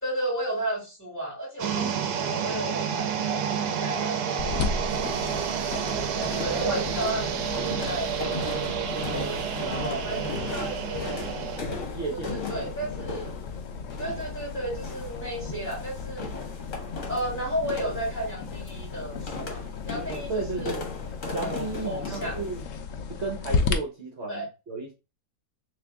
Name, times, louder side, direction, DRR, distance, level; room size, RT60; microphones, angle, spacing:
voice 1, 0.0-5.7 6.4-8.4 9.0-11.2 12.1-13.3 14.0-16.3 17.1-20.7 21.3-22.4 24.3-24.5, right 1 dB, 5° left, 2.3 m, -34 dB
sound 1, 1.6-11.6, right 8 dB, 75° right, 1.1 m, -30 dB
voice 2, 1.7-2.0 6.5-6.9 9.1-10.3 11.6-12.9 13.9-14.2 20.1-20.9 21.3-22.7 23.1-24.9, right 3 dB, 45° right, 1.1 m, -34 dB
sound 2, 4.4-23.7, left 5 dB, 65° left, 0.8 m, -35 dB
sound 3, 4.9-22.6, left 3 dB, 50° left, 1.4 m, -38 dB
3.3 x 3.0 x 3.5 m
omnidirectional pair, 1.8 m